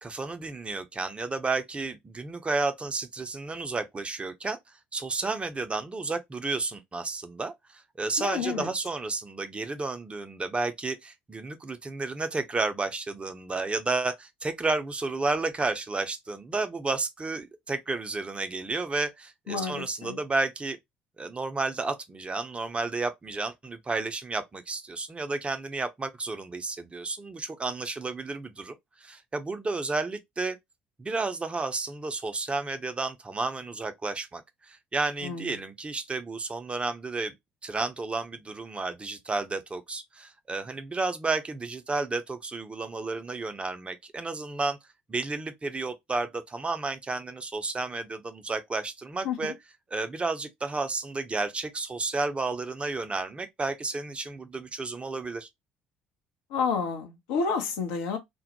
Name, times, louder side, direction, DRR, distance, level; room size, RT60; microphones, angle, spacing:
voice 1, 0.0-4.6 4.9-20.8 21.2-28.7 29.0-30.6 31.0-37.3 37.6-44.8 45.1-49.5 49.9-55.5, right 3 dB, 20° right, 0.5 m, -32 dB
voice 2, 8.2-8.7 19.5-20.2 35.2-35.5 49.2-49.5 56.5-58.2, left 5 dB, 65° left, 0.6 m, -30 dB
2.2 x 2.0 x 2.8 m
figure-of-eight pair, 50°, 5 cm